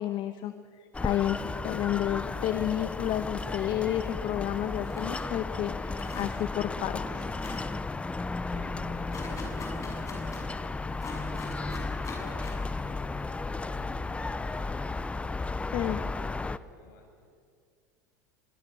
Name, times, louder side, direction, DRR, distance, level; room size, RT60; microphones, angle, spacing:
voice 1, 0.0-1.4 1.6-7.3 15.7-16.0, left 12 dB, 50° left, 10 dB, 1.2 m, -31 dB
sound 1, 0.9-16.6, left 3 dB, 10° left, 0.8 m, -34 dB
sound 2, 4.8-5.3 5.7-6.7 7.0-7.1 7.4-7.6 9.1-10.4 11.0-12.6, left 4 dB, 30° left, 7.1 m, -43 dB
voice 2, 8.4-10.8 11.1-17.5, left 3 dB, 70° left, 2 dB, 7.6 m, -51 dB
24.5 x 22.5 x 7.1 m, 2.1 s
hypercardioid pair, 90°, 10 cm